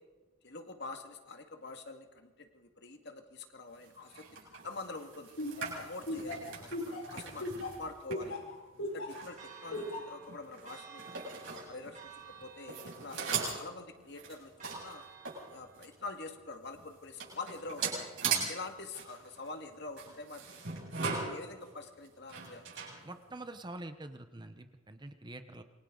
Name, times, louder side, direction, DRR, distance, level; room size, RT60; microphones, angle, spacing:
voice 1, 0.4-5.4 5.7-8.4 8.8-11.0 11.4-15.0 15.5-18.0 18.5-20.6 21.0-22.8, left 3 dB, 55° left, 5 dB, 2.1 m, -46 dB
sound 1, 3.8-12.4 12.7-16.0 16.4-16.5 16.7-23.5, right 5 dB, 65° right, 7.8 m, -40 dB
Laughter, 5.4-9.2 9.7-10.2, left 1 dB, 80° left, 4.8 m, -37 dB
Church bell, 9.4-15.9, right 6 dB, 40° right, 4.7 m, -53 dB
voice 2, 23.0-25.6, right 2 dB, 20° right, 8 dB, 0.9 m, -45 dB
27.5 x 24.0 x 3.9 m, 1.2 s
head